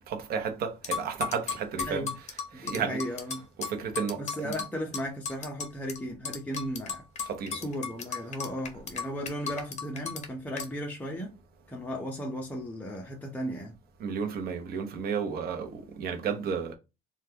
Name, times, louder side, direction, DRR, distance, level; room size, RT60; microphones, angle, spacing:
voice 1, 0.1-2.1 2.5-3.0 3.6-4.5 7.2-7.6 14.0-16.7, right 6 dB, 65° right, 0.8 m, -32 dB
sound 1, 0.8-6.0 6.3-10.3 10.6-10.7, left 6 dB, 45° left, 0.8 m, -35 dB
voice 2, 2.5-3.4 4.2-7.0 7.5-11.3 11.7-13.7, equal, 10° left, 0.7 m, -35 dB
3.3 x 2.3 x 2.8 m
cardioid pair, 110°, 17 cm